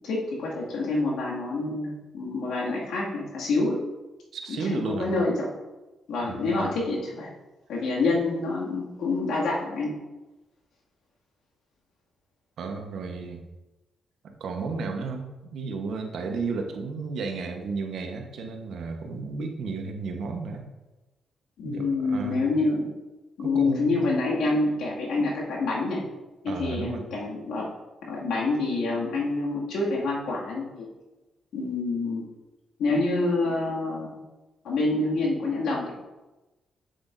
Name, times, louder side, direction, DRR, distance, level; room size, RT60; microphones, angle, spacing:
voice 1, 0.0-3.8 4.5-5.5 6.1-7.3 7.7-9.9 21.6-22.9 23.4-26.0 26.4-27.7 28.0-30.9 31.5-32.3 32.8-34.2 34.6-35.9, left 3 dB, 85° left, -4 dB, 2.2 m, -27 dB
voice 2, 4.3-5.1 6.2-6.7 12.6-13.4 14.2-15.3 15.5-20.6 21.6-22.5 23.4-24.1 26.5-27.0, right 4 dB, 75° right, 3 dB, 1.1 m, -33 dB
8.0 x 7.9 x 2.7 m, 1.1 s
cardioid pair, 75°, 0 cm